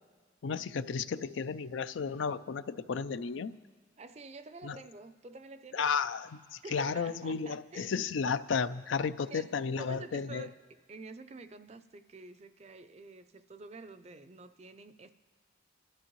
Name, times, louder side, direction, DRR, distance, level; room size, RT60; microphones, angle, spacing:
voice 1, 0.4-3.6 4.6-4.8 5.7-10.5, left 5 dB, 80° left, 0.4 m, -33 dB
voice 2, 4.0-5.8 6.6-7.9 9.3-10.5 10.9-15.1, right 3 dB, 35° right, 0.5 m, -48 dB
28.0 x 12.5 x 3.1 m
head